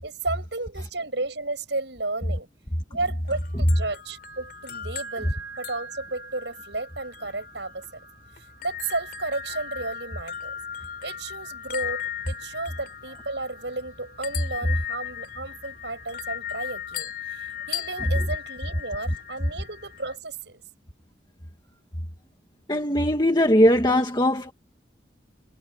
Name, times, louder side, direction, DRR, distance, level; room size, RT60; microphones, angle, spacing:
voice 1, 0.0-2.5 2.9-8.1 8.6-10.6 11.0-20.6, right 3 dB, 70° right, 7.3 m, -33 dB
sound 1, 3.3-20.2, left 8 dB, 50° left, 4.2 m, -37 dB
voice 2, 22.7-24.5, equal, 25° left, 2.0 m, -20 dB
head